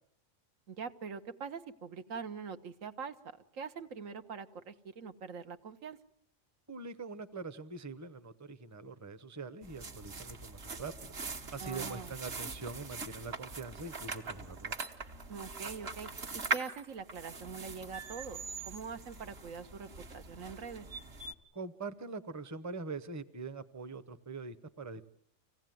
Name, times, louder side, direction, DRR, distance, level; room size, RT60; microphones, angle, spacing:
voice 1, 0.7-3.2 3.5-6.0 11.6-12.1 15.3-20.9, right 6 dB, 85° right, 9 dB, 1.5 m, -43 dB
voice 2, 6.7-11.1 11.5-14.7 21.5-25.1, right 3 dB, 15° right, 11 dB, 0.8 m, -43 dB
sound 1, 9.6-21.3, right 4 dB, 50° right, 1.6 m, -42 dB
25.5 x 17.0 x 9.2 m, 0.73 s
omnidirectional pair, 1.3 m